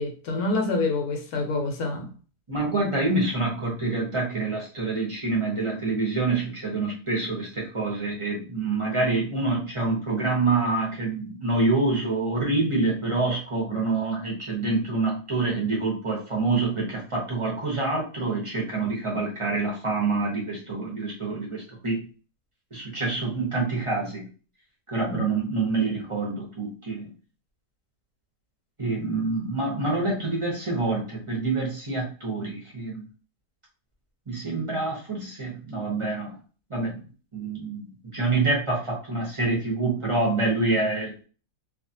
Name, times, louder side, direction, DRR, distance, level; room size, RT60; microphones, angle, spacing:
voice 1, 0.0-2.1 25.0-25.3, left 2 dB, 70° left, 1.1 m, -27 dB
voice 2, 2.5-22.0 22.7-24.3 24.9-27.1 28.8-33.0 34.3-36.3 36.7-37.0 37.3-41.3, right 3 dB, 30° right, 0.6 m, -26 dB
2.7 x 2.4 x 2.6 m
omnidirectional pair, 1.7 m